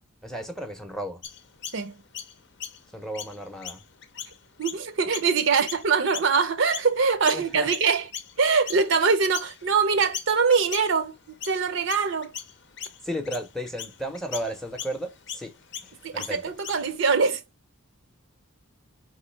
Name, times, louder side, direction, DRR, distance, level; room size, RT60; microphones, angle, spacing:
voice 1, 0.2-1.2 2.9-3.8 7.3-7.7 13.0-15.5 15.8-16.4, equal, ahead, 0.7 m, -34 dB
Chirp tweet, 1.2-7.0 7.2-17.0, left 9 dB, 55° left, 0.6 m, -40 dB
voice 2, 4.6-8.1 8.4-11.1 11.5-12.3 16.0-17.4, right 5 dB, 60° right, 0.6 m, -23 dB
4.8 x 3.1 x 3.1 m
head